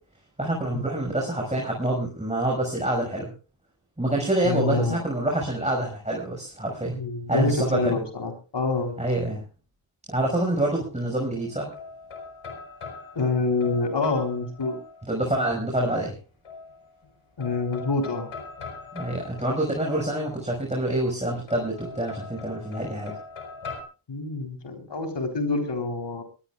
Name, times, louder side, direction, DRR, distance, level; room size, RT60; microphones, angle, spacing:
voice 1, 0.4-3.3 4.0-7.0 7.3-8.0 9.0-9.4 10.1-11.7 15.1-16.2 18.9-23.1, right 1 dB, 15° right, -1 dB, 5.9 m, -26 dB
voice 2, 4.4-5.0 6.8-9.0 13.1-14.8 17.4-18.3 24.1-26.2, left 3 dB, 60° left, 4 dB, 3.9 m, -27 dB
sound 1, 11.3-15.3 16.4-17.1 17.4-20.6 21.5-23.8, left 4 dB, 80° left, 4.7 m, -41 dB
23.0 x 18.5 x 2.4 m, 0.33 s
cardioid pair, 65°, 49 cm